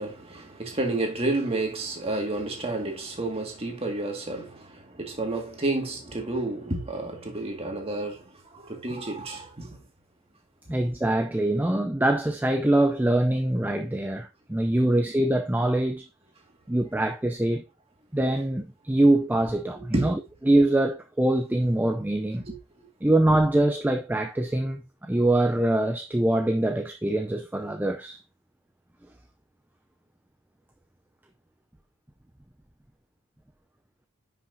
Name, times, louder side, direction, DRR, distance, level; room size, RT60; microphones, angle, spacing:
voice 1, 0.0-9.8 14.8-14.9 19.9-20.1 22.4-22.9, right 2 dB, 25° right, 1.8 m, -30 dB
voice 2, 10.7-16.0 16.7-17.6 18.1-20.2 20.5-22.4 23.0-28.2, right 1 dB, 10° right, 0.4 m, -24 dB
10.0 x 5.8 x 2.6 m
head